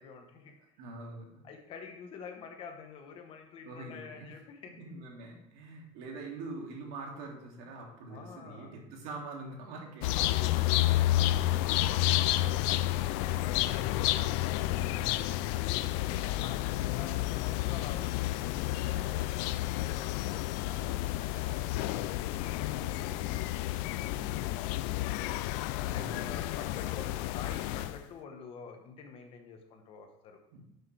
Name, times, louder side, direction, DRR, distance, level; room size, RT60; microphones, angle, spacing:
voice 1, 0.0-0.8 1.4-4.7 8.1-8.7 10.1-14.2 15.5-25.3 25.9-30.4, left 6 dB, 40° left, 4 dB, 1.1 m, -48 dB
voice 2, 0.8-1.5 3.6-4.3 4.8-10.5 12.2-12.7 14.0-14.2 14.5-15.5 24.1-24.5 25.9-26.3 30.5-30.6, right 2 dB, 70° right, 0 dB, 2.5 m, -45 dB
arguing sparrows, 10.0-28.0, left 15 dB, 80° left, 0.4 m, -30 dB
11.0 x 6.7 x 3.3 m, 0.89 s
cardioid pair, 175°, 15 cm